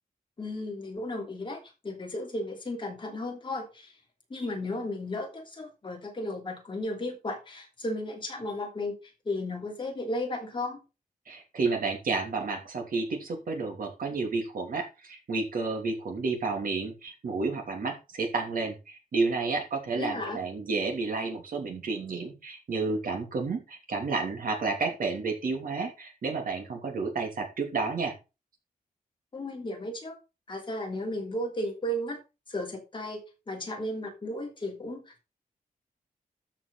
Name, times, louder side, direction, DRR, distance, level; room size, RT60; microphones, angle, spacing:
voice 1, 0.4-3.9 4.3-9.0 9.2-10.8 19.9-20.4 29.3-30.2 30.5-32.2 32.5-35.3, left 1 dB, 35° left, 1 dB, 3.0 m, -34 dB
voice 2, 11.3-28.1, right 4 dB, 70° right, 3 dB, 3.0 m, -31 dB
13.0 x 6.2 x 4.1 m, 0.29 s
wide cardioid pair, 170°, 15 cm